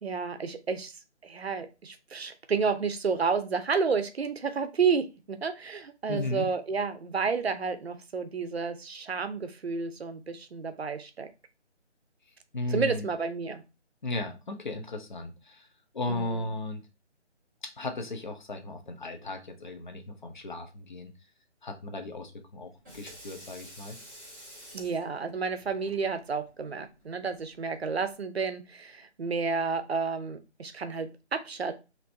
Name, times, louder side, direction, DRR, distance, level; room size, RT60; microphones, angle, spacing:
voice 1, 0.0-1.0 1.2-11.3 12.7-13.6 16.1-16.5 24.7-31.7, right 5 dB, 60° right, 9 dB, 0.7 m, -31 dB
voice 2, 6.1-6.5 12.5-13.1 14.0-15.7 15.9-16.8 17.8-21.1 21.6-24.0, left 2 dB, 40° left, 5 dB, 0.8 m, -35 dB
Water tap faucet / Sink (filling or washing), 22.6-28.1, equal, 15° right, 1.3 m, -51 dB
4.4 x 2.9 x 2.6 m, 0.28 s
figure-of-eight pair, 165°, 35 cm